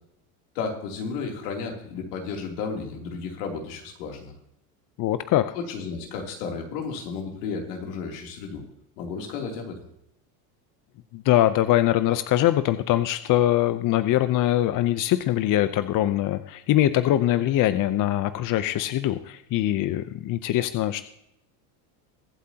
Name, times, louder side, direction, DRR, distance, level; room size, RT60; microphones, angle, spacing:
voice 1, 0.5-4.3 5.5-8.6 9.0-9.8, left 5 dB, 85° left, 1 dB, 3.2 m, -33 dB
voice 2, 5.0-5.5 11.1-21.0, left 13 dB, 45° left, 12 dB, 0.7 m, -22 dB
22.5 x 8.2 x 2.9 m, 0.79 s
supercardioid pair, 110°, 46 cm